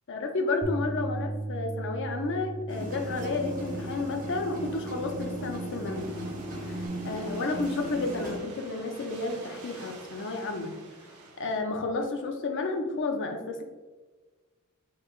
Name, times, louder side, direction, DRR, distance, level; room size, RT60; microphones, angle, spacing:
voice 1, 0.1-6.1 6.7-6.8 7.0-10.8 11.4-13.6, left 3 dB, 55° left, 4 dB, 0.6 m, -31 dB
Bass guitar, 0.6-6.9, right 2 dB, 15° left, 0.6 m, -38 dB
sound 1, 2.7-8.4, equal, 40° right, 0.9 m, -37 dB
sound 2, 6.0-11.6, right 3 dB, 85° right, 0.8 m, -48 dB
5.6 x 3.3 x 2.4 m, 1.3 s
head